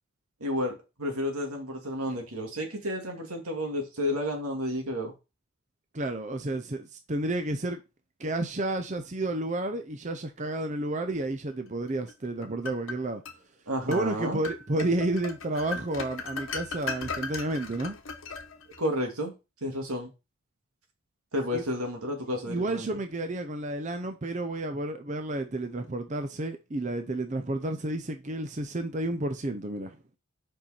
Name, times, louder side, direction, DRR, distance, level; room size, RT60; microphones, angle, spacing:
voice 1, 0.4-5.1 13.7-14.4 18.8-19.3 19.6-20.1 21.3-23.0, left 1 dB, 90° right, 2.3 m, -31 dB
voice 2, 5.9-7.8 8.2-13.2 13.9-18.0 21.5-21.6 22.5-30.0, right 2 dB, 35° right, 0.6 m, -31 dB
sound 1, 12.1-13.4 13.9-14.1 14.4-18.9, left 4 dB, 65° left, 1.1 m, -37 dB
5.5 x 5.4 x 4.3 m
head